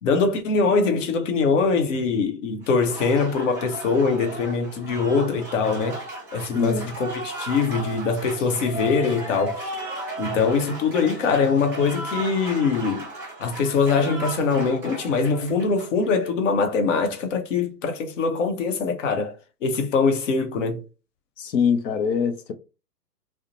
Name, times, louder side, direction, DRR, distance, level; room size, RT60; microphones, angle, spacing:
voice 1, 0.0-6.0 6.3-9.7 10.2-13.1 13.4-19.3 19.6-20.8, left 4 dB, 50° left, 0.7 m, -23 dB
Applause, 2.6-16.3, right 1 dB, 5° right, 0.8 m, -35 dB
voice 2, 6.4-6.9 21.4-22.5, left 6 dB, 85° left, 0.7 m, -23 dB
2.6 x 2.1 x 2.8 m
hypercardioid pair, 135°, 49 cm